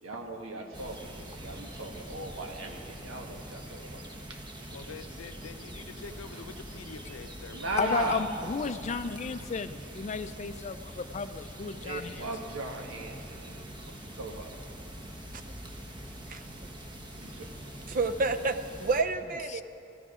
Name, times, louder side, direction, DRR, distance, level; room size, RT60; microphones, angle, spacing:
voice 1, 0.0-4.0 4.3-4.7 7.5-8.2 11.8-14.5 17.2-17.9, right 2 dB, 90° right, 2 dB, 1.5 m, -38 dB
sound 1, 0.7-19.0, right 1 dB, 25° right, 1.1 m, -44 dB
voice 2, 4.7-8.0, left 4 dB, 85° left, 8 dB, 0.7 m, -46 dB
voice 3, 7.8-12.2 19.5-19.6, left 5 dB, 35° left, 11 dB, 0.4 m, -33 dB
voice 4, 16.3-16.7 17.9-19.6, right 3 dB, 40° right, 10 dB, 0.5 m, -30 dB
14.0 x 13.5 x 5.0 m, 2.7 s
head